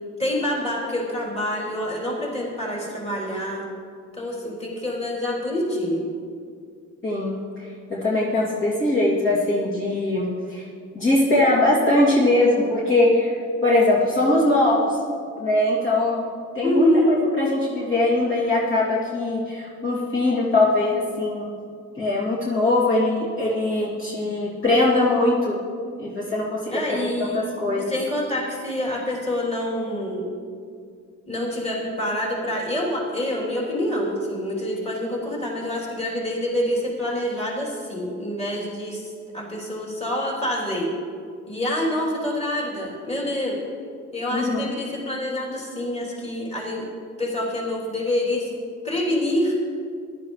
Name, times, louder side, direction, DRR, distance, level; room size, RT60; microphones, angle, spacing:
voice 1, 0.2-3.6 4.1-6.0 16.6-17.1 26.7-27.4 27.7-30.3 31.3-40.9 41.5-43.6 44.1-46.8 47.2-48.5 48.8-49.5, left 1 dB, 20° left, -4 dB, 3.3 m, -26 dB
voice 2, 7.0-7.4 7.9-10.6 10.9-13.3 13.6-15.0 15.4-16.2 16.5-21.5 22.0-25.6 26.0-27.9 44.3-44.7, left 2 dB, 40° left, -7 dB, 2.8 m, -21 dB
14.5 x 11.5 x 3.2 m, 2.2 s
cardioid pair, 90°, 30 cm